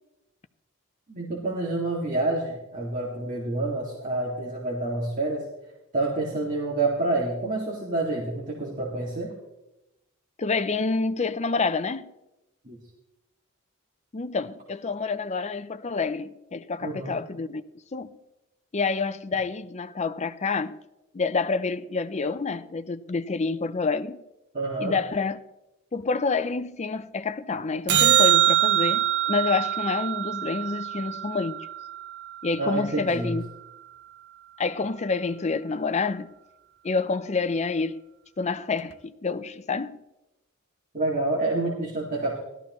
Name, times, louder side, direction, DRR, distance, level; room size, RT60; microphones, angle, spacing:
voice 1, 1.1-5.4 5.9-9.3 12.7-12.8 16.8-17.2 24.5-25.0 32.6-33.3 40.9-42.4, right 2 dB, 40° right, 2.2 m, -28 dB
voice 2, 10.4-12.1 14.1-17.6 17.9-18.2 18.7-20.8 21.1-24.2 24.8-25.4 25.9-31.6 32.4-33.4 34.6-36.3 36.8-38.0 38.4-40.0, left 4 dB, 35° left, 0.6 m, -28 dB
sound 1, 27.9-32.4 38.9-39.0, right 11 dB, 55° right, 0.7 m, -24 dB
17.0 x 13.0 x 3.1 m
head